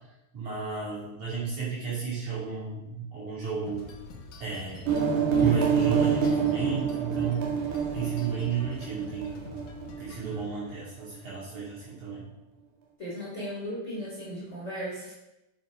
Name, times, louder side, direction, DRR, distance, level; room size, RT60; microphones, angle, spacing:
voice 1, 0.3-3.9 4.4-4.9 5.4-9.4 10.0-12.3, right 6 dB, 50° right, -8 dB, 3.8 m, -33 dB
sound 1, 3.6-10.8, left 2 dB, 75° left, 1.6 m, -46 dB
sound 2, 4.9-10.3, right 6 dB, 80° right, 4.3 m, -27 dB
voice 2, 13.0-15.1, equal, 20° left, -7 dB, 3.3 m, -36 dB
8.7 x 7.7 x 5.1 m, 0.94 s
omnidirectional pair, 5.0 m